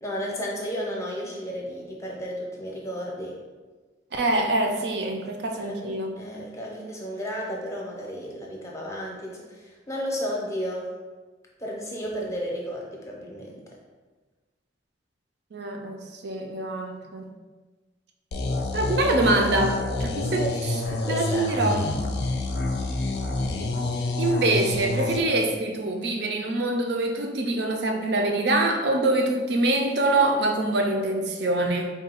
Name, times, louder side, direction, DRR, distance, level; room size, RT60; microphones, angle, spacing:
voice 1, 0.0-3.4 5.6-10.9 11.6-13.6 20.2-20.6 21.0-21.8, equal, 15° left, -3 dB, 0.6 m, -33 dB
voice 2, 4.1-6.2 15.5-17.3 18.7-20.5 21.1-21.9 24.2-31.9, right 2 dB, 65° right, 3 dB, 0.5 m, -24 dB
sound 1, 18.3-25.2, left 2 dB, 60° left, 0.4 m, -28 dB
3.6 x 2.3 x 4.3 m, 1.3 s
head